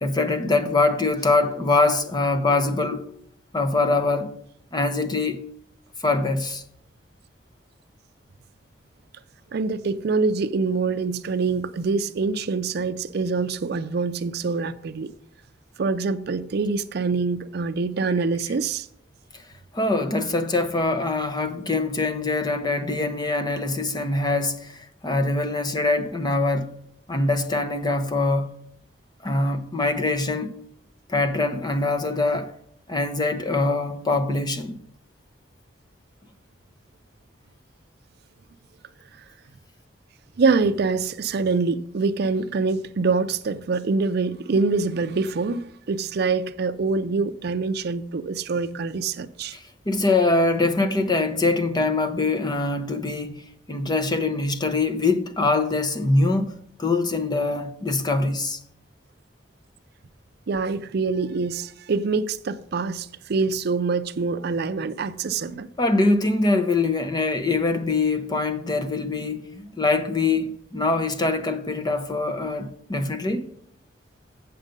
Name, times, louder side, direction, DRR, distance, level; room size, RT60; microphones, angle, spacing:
voice 1, 0.0-3.1 3.5-4.3 4.7-5.4 6.0-6.6 19.7-26.7 27.1-28.5 29.2-30.5 31.1-32.5 32.9-34.8 49.9-58.6 65.8-73.5, left 3 dB, 20° left, 0.7 m, -23 dB
voice 2, 9.5-15.1 15.8-18.9 39.2-39.3 40.4-49.6 60.5-65.7, right 4 dB, 60° right, 0.5 m, -25 dB
8.1 x 6.7 x 5.2 m
head